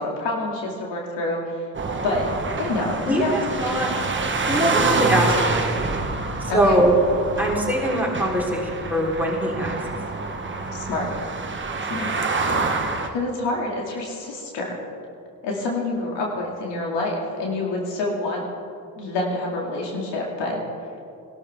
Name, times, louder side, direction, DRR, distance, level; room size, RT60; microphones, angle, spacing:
voice 1, 0.0-1.6 2.0-2.3 2.6-3.7 6.5-6.8 10.7-11.1 11.9-12.1 13.1-14.8 15.4-18.4 19.0-20.6, left 2 dB, 65° left, -1 dB, 2.5 m, -27 dB
sound 1, 1.7-13.1, right 3 dB, 25° right, 1.4 m, -26 dB
voice 2, 3.1-3.9 4.5-5.6 6.5-7.0 7.4-9.8, equal, 5° right, -3 dB, 3.8 m, -22 dB
19.0 x 12.5 x 3.6 m, 2.5 s
hypercardioid pair, 55°, 47 cm